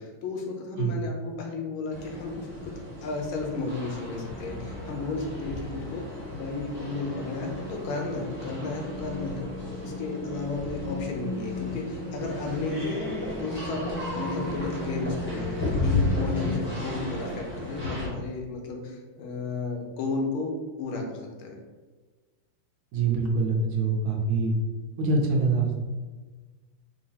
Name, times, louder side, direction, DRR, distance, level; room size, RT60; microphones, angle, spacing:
voice 1, 0.0-2.7 3.0-6.0 6.3-13.1 13.4-20.5 20.8-21.6, left 3 dB, 75° left, 1 dB, 1.5 m, -33 dB
sound 1, 1.9-18.1, left 2 dB, 10° left, 0.8 m, -33 dB
voice 2, 22.9-24.6 25.0-25.8, right 3 dB, 85° right, 1 dB, 1.6 m, -24 dB
5.1 x 2.9 x 2.8 m, 1.3 s
omnidirectional pair, 2.3 m